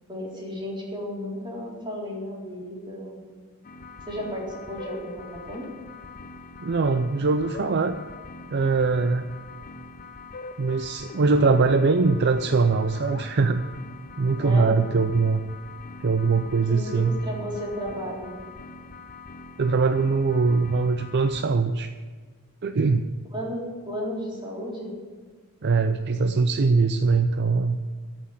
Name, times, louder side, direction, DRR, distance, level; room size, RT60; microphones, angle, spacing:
voice 1, 0.1-3.3 4.1-5.6 14.4-14.7 16.7-18.4 23.3-24.9, equal, 20° right, -4 dB, 3.8 m, -33 dB
sound 1, 3.6-21.4, left 3 dB, 40° left, 0.8 m, -43 dB
voice 2, 6.6-8.0 8.5-9.2 10.6-13.6 14.2-15.4 16.0-17.2 19.6-21.9 22.6-23.1 25.6-27.8, right 4 dB, 50° right, 8 dB, 0.5 m, -22 dB
14.0 x 6.2 x 9.6 m, 1.4 s
head